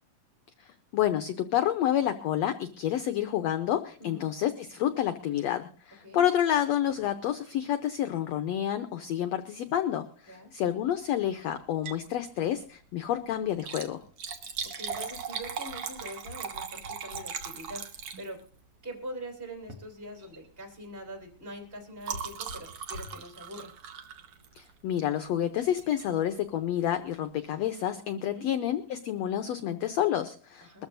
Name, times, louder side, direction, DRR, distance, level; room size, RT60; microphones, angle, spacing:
voice 1, 0.9-14.0 24.5-30.9, left 11 dB, 85° left, 10 dB, 1.5 m, -29 dB
Liquid, 11.7-12.1 12.5-12.6 13.5-18.6 19.6-19.9 20.2-20.5 20.7-24.8 25.8-26.0 26.6-26.7 26.8-26.9, right 6 dB, 55° right, 1.8 m, -39 dB
voice 2, 14.8-18.4 18.8-23.7 28.2-28.5 30.6-30.9, equal, 15° right, 3 dB, 3.0 m, -43 dB
23.0 x 13.5 x 2.6 m, 0.42 s
omnidirectional pair, 4.0 m